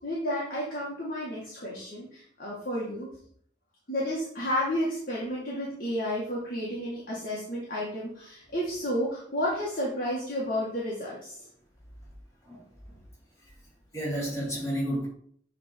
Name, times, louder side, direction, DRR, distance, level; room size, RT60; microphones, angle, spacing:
voice 1, 0.0-3.1 3.9-11.5, equal, 50° left, -6 dB, 2.1 m, -31 dB
voice 2, 12.4-13.0 13.4-13.5 13.9-15.1, equal, 15° left, -5 dB, 3.1 m, -32 dB
9.2 x 3.7 x 4.6 m, 0.62 s
head